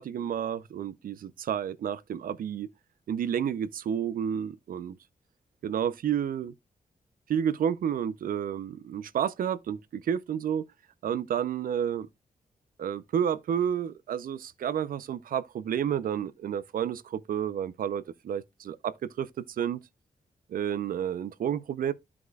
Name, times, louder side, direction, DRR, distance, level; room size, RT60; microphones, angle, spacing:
voice 1, 0.0-2.7 3.1-5.0 5.6-6.5 7.3-10.7 11.0-12.1 12.8-19.8 20.5-21.9, right 9 dB, 80° right, 0.6 m, -30 dB
13.5 x 4.8 x 2.3 m
cardioid pair, 95°, 14 cm